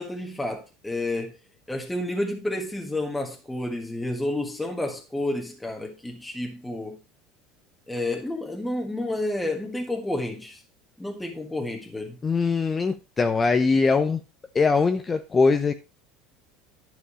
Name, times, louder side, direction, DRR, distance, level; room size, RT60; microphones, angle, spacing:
voice 1, 0.0-1.4 1.7-7.0 7.9-10.6 11.0-12.2, left 1 dB, 5° left, 1.6 m, -30 dB
voice 2, 12.2-14.2 14.5-15.7, left 4 dB, 20° left, 0.7 m, -21 dB
11.5 x 5.2 x 4.8 m
supercardioid pair, 120°, 0 cm